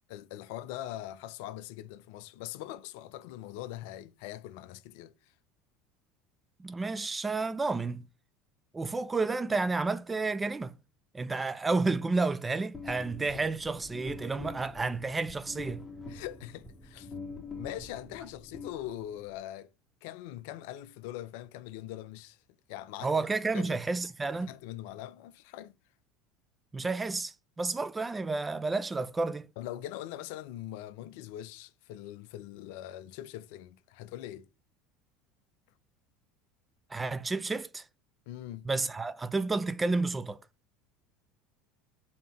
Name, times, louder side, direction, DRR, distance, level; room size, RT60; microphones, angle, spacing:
voice 1, 0.1-5.3 13.0-13.4 16.1-17.1 17.6-19.7 20.0-22.4 22.7-23.1 23.5-23.8 24.5-25.7 29.6-34.5 38.3-38.7, left 13 dB, 65° left, 0.4 m, -42 dB
voice 2, 6.6-8.1 8.7-10.7 11.1-15.8 23.0-24.5 26.7-29.5 36.9-37.9 38.7-40.4, right 3 dB, 20° right, 0.4 m, -31 dB
sound 1, 12.7-19.3, left 3 dB, 15° left, 1.6 m, -45 dB
5.1 x 2.8 x 3.4 m
hypercardioid pair, 70°, 0 cm